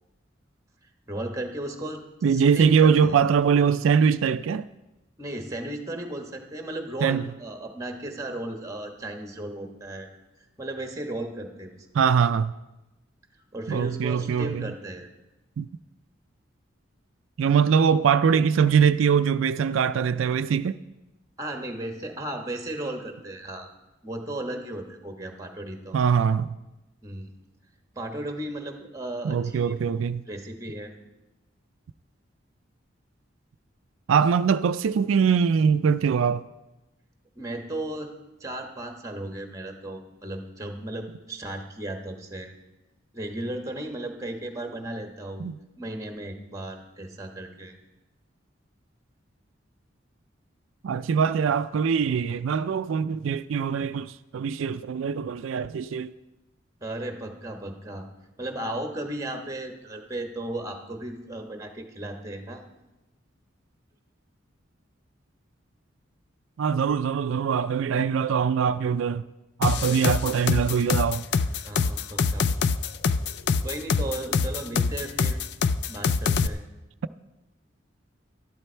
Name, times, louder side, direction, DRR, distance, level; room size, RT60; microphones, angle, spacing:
voice 1, 1.1-2.0 2.3-3.1 5.2-10.1 10.6-11.7 13.5-15.1 21.4-23.7 24.0-26.0 27.0-27.3 27.9-29.9 30.3-30.9 37.4-38.1 38.4-42.5 43.1-45.5 45.8-47.7 56.8-58.0 58.4-62.6 69.7-70.0 71.6-72.6 73.6-75.4 75.9-76.6, right 1 dB, 15° right, 1.2 m, -35 dB
voice 2, 2.2-4.7 7.0-7.3 11.9-12.5 13.7-14.7 15.6-15.7 17.4-20.8 25.9-26.6 29.2-30.2 34.1-36.4 45.4-45.5 50.8-56.1 66.6-69.2 69.6-71.2, right 6 dB, 90° right, 0.4 m, -22 dB
sound 1, 69.6-76.5, left 5 dB, 55° left, 0.4 m, -24 dB
12.0 x 11.5 x 4.4 m
head